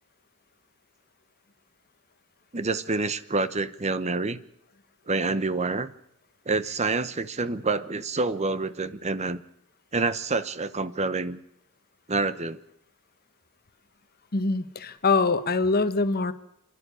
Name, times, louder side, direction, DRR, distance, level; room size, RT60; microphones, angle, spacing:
voice 1, 2.5-4.4 5.1-5.9 6.5-9.4 9.9-11.4 12.1-12.6, right 3 dB, 30° right, 14 dB, 0.9 m, -27 dB
voice 2, 14.3-16.3, left 3 dB, 45° left, 11 dB, 1.3 m, -24 dB
28.0 x 11.5 x 9.7 m, 0.80 s
head